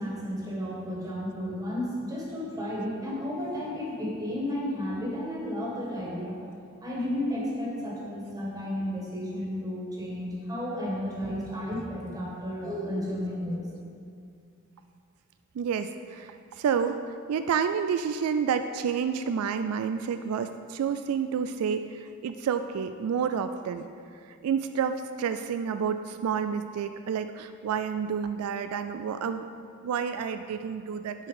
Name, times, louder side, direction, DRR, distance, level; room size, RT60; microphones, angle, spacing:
voice 1, 0.0-6.4 6.8-13.7, left 1 dB, 15° right, -5 dB, 1.7 m, -32 dB
voice 2, 15.5-17.0 17.3-23.9 24.2-29.5 29.8-31.3, right 7 dB, 80° right, 9 dB, 0.3 m, -29 dB
7.3 x 4.5 x 6.5 m, 2.4 s
head